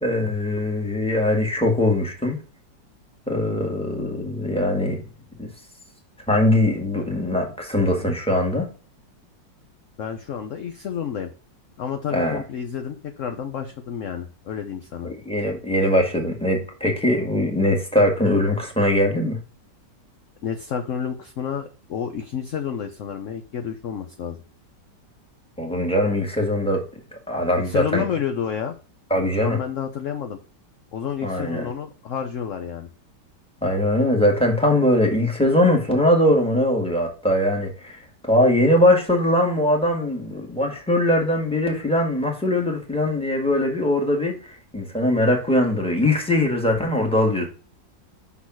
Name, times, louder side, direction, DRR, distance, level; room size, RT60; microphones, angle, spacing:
voice 1, 0.0-2.4 3.3-5.0 5.4-5.5 6.3-8.7 12.1-12.4 15.0-19.4 25.6-26.8 27.3-28.0 29.1-29.6 31.2-31.7 33.6-47.5, left 1 dB, 5° left, 1.8 m, -21 dB
voice 2, 10.0-11.3 11.8-15.1 20.4-24.4 27.6-28.8 29.4-30.4 30.9-32.9, left 8 dB, 60° left, 0.9 m, -30 dB
6.0 x 4.0 x 6.0 m
omnidirectional pair, 2.0 m